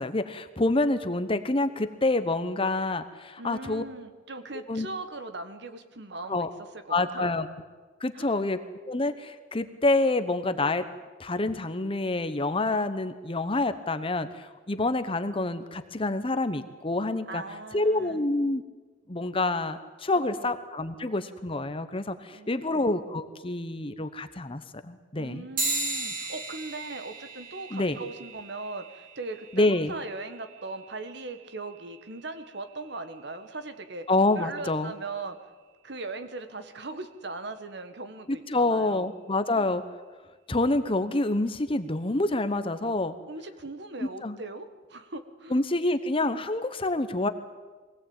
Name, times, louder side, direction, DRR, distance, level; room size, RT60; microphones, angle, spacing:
voice 1, 0.0-3.8 4.7-4.9 6.3-6.5 6.9-7.5 8.0-10.9 11.2-17.4 17.7-18.6 19.1-25.5 27.7-28.0 29.5-29.9 34.1-34.9 38.3-39.8 40.5-43.1 44.2-44.4 45.5-47.3, left 2 dB, 30° left, 10 dB, 1.0 m, -27 dB
voice 2, 3.4-6.5 6.9-7.4 8.1-8.5 17.3-18.2 20.4-20.5 22.3-22.8 25.2-34.1 34.4-35.4 35.8-39.1 39.5-39.8 42.8-42.9 43.3-45.6, right 3 dB, 65° right, 9 dB, 1.6 m, -39 dB
sound 1, 25.6-35.4, right 2 dB, 50° right, 5.0 m, -38 dB
23.0 x 17.0 x 8.9 m, 1.3 s
head